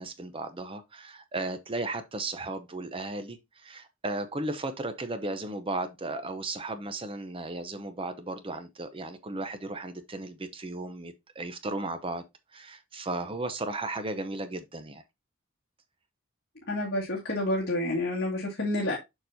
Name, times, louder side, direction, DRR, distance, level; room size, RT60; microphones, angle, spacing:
voice 1, 0.0-12.2 12.5-15.0, right 2 dB, 25° right, 0.7 m, -35 dB
voice 2, 16.7-19.0, left 1 dB, 50° left, 2.1 m, -29 dB
6.8 x 6.0 x 2.7 m
head